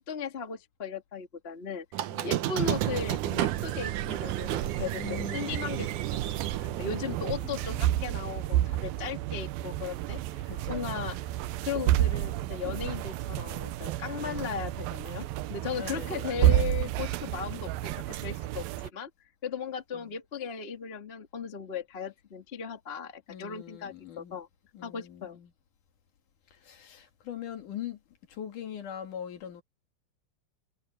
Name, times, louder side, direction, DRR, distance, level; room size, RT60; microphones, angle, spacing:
voice 1, 0.0-5.9 6.4-11.2 11.6-19.1 19.4-24.5 24.8-25.4, left 6 dB, 30° left, 1.2 m, -37 dB
Squeak, 1.9-7.3, right 13 dB, 70° right, 2.3 m, -33 dB
voice 2, 2.1-2.5 5.0-5.6 6.7-7.9 9.4-9.5 10.5-10.8 11.1-11.2 14.2-14.7 15.8-16.5 19.9-20.1 23.3-24.4 24.7-25.5 26.7-28.0 28.3-29.6, left 9 dB, 65° left, 3.4 m, -42 dB
sound 1, 2.6-18.9, right 14 dB, 85° right, 2.5 m, -31 dB
omnidirectional pair, 4.1 m